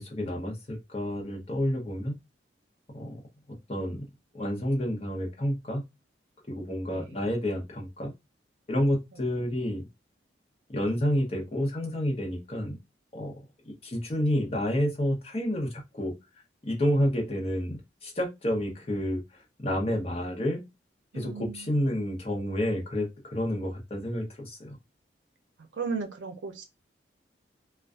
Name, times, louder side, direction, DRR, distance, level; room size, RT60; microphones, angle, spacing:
voice 1, 0.0-2.1 2.9-3.2 3.7-4.1 4.3-5.8 6.5-8.1 8.7-9.9 10.7-12.8 13.1-13.3 13.6-16.1 16.6-20.6 21.1-24.8, equal, 30° left, 0.7 m, -29 dB
voice 2, 21.1-21.7 25.7-26.6, right 5 dB, 80° right, 0.5 m, -35 dB
2.5 x 2.2 x 2.3 m
head